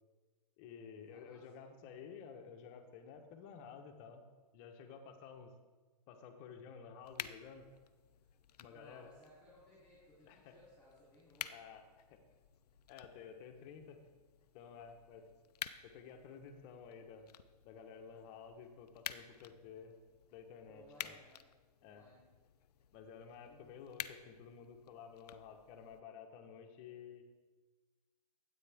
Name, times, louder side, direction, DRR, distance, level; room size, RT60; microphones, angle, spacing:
voice 1, 0.6-4.2 4.5-5.5 6.1-7.7 8.6-9.1 10.3-10.5 11.5-12.2 12.9-14.0 14.5-15.3 15.8-17.3 17.6-20.0 20.3-21.2 21.8-22.1 22.9-27.2, left 6 dB, 35° left, 5 dB, 1.2 m, -53 dB
voice 2, 1.1-1.5 8.7-11.6 20.7-21.3 21.8-22.2 23.5-23.7, left 1 dB, 5° left, -8 dB, 3.4 m, -62 dB
sound 1, 7.0-26.0, left 9 dB, 70° left, 0.6 m, -52 dB
13.0 x 8.7 x 3.6 m, 1.3 s
hypercardioid pair, 135°, 21 cm